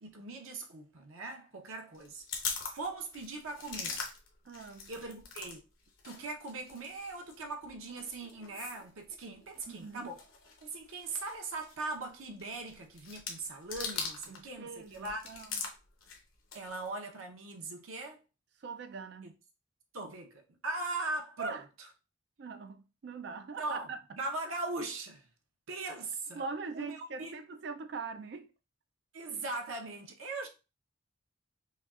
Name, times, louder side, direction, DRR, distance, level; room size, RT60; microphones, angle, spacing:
voice 1, 0.0-4.0 4.9-5.6 6.0-10.2 10.6-15.3 16.5-18.2 19.2-19.3 19.9-21.6 23.6-23.9 24.2-25.3 25.7-26.4 26.7-27.4 29.1-30.5, right 3 dB, 85° right, 0.9 m, -40 dB
sound 1, 1.9-5.6 5.8-14.5 14.8-16.9, left 5 dB, 80° left, 1.0 m, -42 dB
voice 2, 4.4-4.9 9.7-10.1 14.3-15.6 18.6-19.3 21.4-21.7 22.4-24.0 26.3-28.5, right 4 dB, 55° right, 0.4 m, -42 dB
5.3 x 2.3 x 2.4 m
head